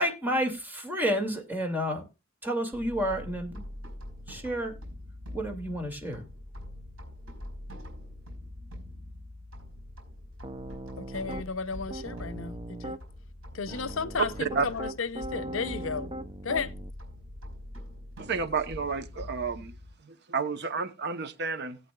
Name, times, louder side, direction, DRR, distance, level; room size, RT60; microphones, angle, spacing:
voice 1, 0.0-2.0 2.4-3.6 4.3-4.8 5.3-6.3, equal, 10° right, 2.3 m, -30 dB
sound 1, 2.7-19.9, left 1 dB, 85° right, 4.6 m, -44 dB
Piano, 10.4-11.5 11.9-13.0 13.7-16.9, right 2 dB, 25° right, 0.5 m, -39 dB
voice 2, 11.0-13.0 13.5-16.1 16.4-16.7, left 5 dB, 75° left, 0.7 m, -34 dB
voice 3, 18.2-19.8 20.0-21.8, right 5 dB, 55° right, 0.9 m, -31 dB
17.5 x 8.5 x 2.3 m
head